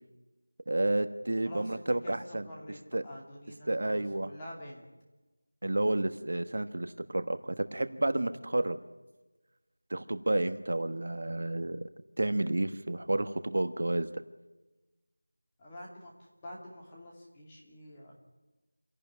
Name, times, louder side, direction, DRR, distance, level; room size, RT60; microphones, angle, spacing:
voice 1, 0.7-2.4 2.9-3.0 3.7-4.3 5.6-8.8 9.9-11.9 12.2-14.1, right 2 dB, 45° right, 10 dB, 1.2 m, -30 dB
voice 2, 1.4-4.8 15.6-16.1 16.4-18.1, left 1 dB, 10° left, -3 dB, 2.6 m, -47 dB
27.0 x 17.5 x 9.9 m, 1.1 s
figure-of-eight pair, 180°, 0 cm